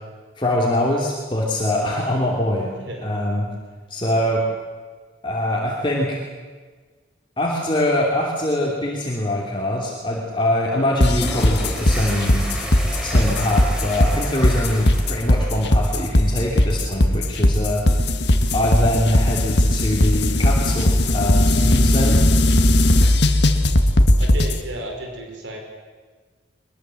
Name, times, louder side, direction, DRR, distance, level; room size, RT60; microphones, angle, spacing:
voice 1, 0.4-2.7 3.0-3.5 3.9-4.4 5.2-6.2 7.4-12.5 13.0-17.8 18.5-22.2, left 1 dB, 25° left, -2 dB, 2.9 m, -23 dB
sound 1, 11.0-24.6, left 1 dB, 60° left, 1.8 m, -17 dB
sound 2, 11.1-16.1, equal, 5° right, 4.4 m, -32 dB
voice 2, 24.2-25.6, right 1 dB, 75° right, 2 dB, 4.9 m, -33 dB
23.0 x 21.5 x 7.8 m, 1.4 s
head